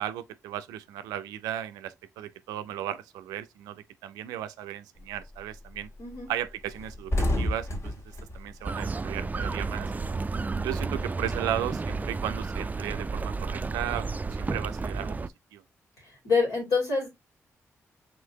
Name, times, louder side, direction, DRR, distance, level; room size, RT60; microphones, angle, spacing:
voice 1, 0.0-5.9 6.3-7.1 7.4-7.9 8.3-9.9 10.6-14.1 14.4-15.2 15.5-15.6, right 11 dB, 90° right, 0.4 m, -35 dB
sound 1, 5.0-5.3 5.7-5.9 6.1-6.3 6.6-9.6 9.9-11.5, left 1 dB, 50° left, 1.6 m, -31 dB
sound 2, 8.6-15.3, right 4 dB, 25° right, 0.3 m, -32 dB
voice 2, 16.2-17.1, left 4 dB, 80° left, 2.7 m, -25 dB
5.0 x 3.6 x 2.8 m
supercardioid pair, 45°, 6 cm